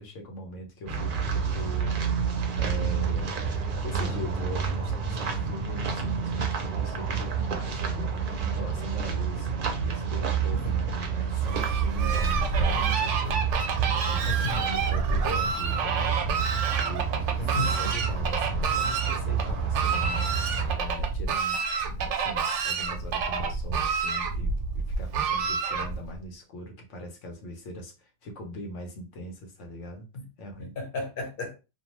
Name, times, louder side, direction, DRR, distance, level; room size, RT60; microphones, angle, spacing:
voice 1, 0.0-2.3 2.6-3.3 3.8-9.5 9.8-20.4 20.7-30.1 30.4-30.7, equal, 90° left, 1.1 m, -41 dB
sound 1, 0.9-20.7, right 6 dB, 55° right, 0.7 m, -29 dB
Fowl, 11.4-26.2, right 5 dB, 90° right, 0.9 m, -29 dB
voice 2, 14.3-14.6 17.4-17.8 30.1-30.3 30.6-31.5, left 2 dB, 55° left, 0.9 m, -33 dB
2.6 x 2.2 x 2.9 m
omnidirectional pair, 1.2 m